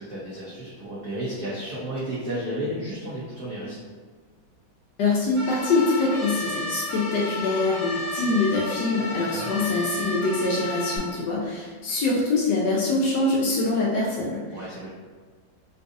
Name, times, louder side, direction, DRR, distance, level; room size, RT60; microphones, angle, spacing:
voice 1, 0.0-3.8 9.3-9.5 14.5-14.9, right 1 dB, 75° right, -7 dB, 0.7 m, -32 dB
voice 2, 5.0-14.4, left 3 dB, 75° left, -4 dB, 1.0 m, -24 dB
sound 1, 5.4-11.0, left 2 dB, 55° left, 0.4 m, -32 dB
3.9 x 2.4 x 2.5 m, 1.5 s
omnidirectional pair, 2.2 m